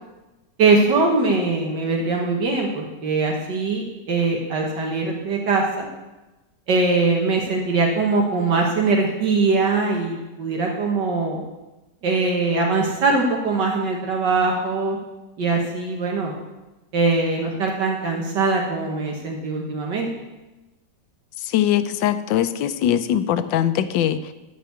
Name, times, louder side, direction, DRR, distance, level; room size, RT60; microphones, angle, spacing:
voice 1, 0.6-5.9 6.7-11.4 12.0-15.0 15.4-16.4 16.9-20.1, right 3 dB, 70° right, 0 dB, 1.9 m, -21 dB
voice 2, 21.4-24.3, left 10 dB, 85° left, 11 dB, 1.4 m, -21 dB
12.5 x 4.8 x 8.4 m, 1.1 s
omnidirectional pair, 2.0 m